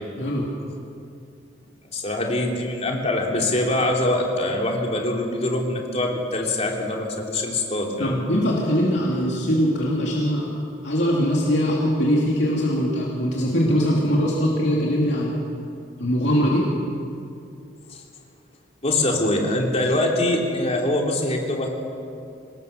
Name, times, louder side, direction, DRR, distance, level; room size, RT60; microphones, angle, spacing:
voice 1, 1.9-8.2 17.9-18.0 18.8-21.7, left 1 dB, 35° left, 0 dB, 3.2 m, -23 dB
voice 2, 8.0-10.5 10.8-15.4 16.0-16.7, equal, 65° left, -4 dB, 2.9 m, -21 dB
25.5 x 19.5 x 6.8 m, 2.5 s
head